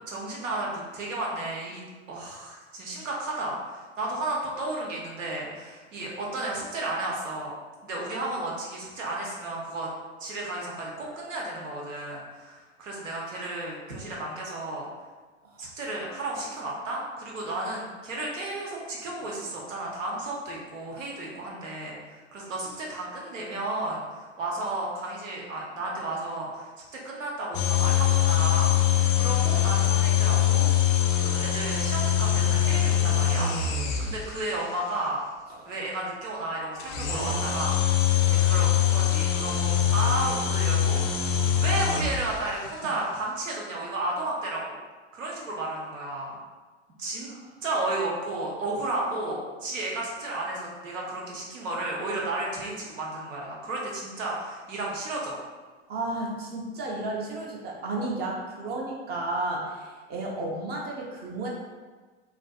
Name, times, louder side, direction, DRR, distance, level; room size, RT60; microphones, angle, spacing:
voice 1, 0.1-1.8 2.1-7.5 7.8-9.9 10.2-14.9 15.6-28.7 29.1-30.7 31.1-33.5 34.0-35.2 35.6-41.0 41.6-44.8 45.1-46.4 47.0-47.3 47.6-55.4, right 2 dB, 90° right, -3 dB, 0.8 m, -33 dB
sound 1, 27.5-34.5 36.8-42.6, left 9 dB, 40° left, 0.4 m, -23 dB
voice 2, 55.9-61.5, right 2 dB, 25° right, -2 dB, 0.5 m, -33 dB
2.5 x 2.5 x 2.3 m, 1.4 s
hypercardioid pair, 105°, 37 cm